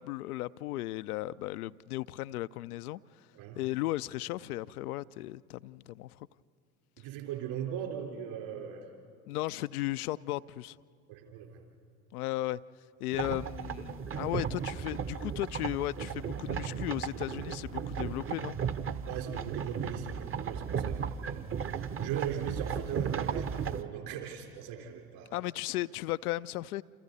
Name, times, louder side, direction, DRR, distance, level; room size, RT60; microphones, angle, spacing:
voice 1, 0.0-3.0 3.6-6.2 9.3-10.8 12.1-12.6 13.0-18.6 25.3-26.8, left 16 dB, 75° left, 0.5 m, -35 dB
voice 2, 7.0-8.9 11.1-11.6 19.1-25.4, right 9 dB, 60° right, 4.4 m, -39 dB
sound 1, 13.1-23.8, right 7 dB, 30° right, 0.9 m, -35 dB
28.5 x 27.5 x 4.1 m
hypercardioid pair, 70°, 45 cm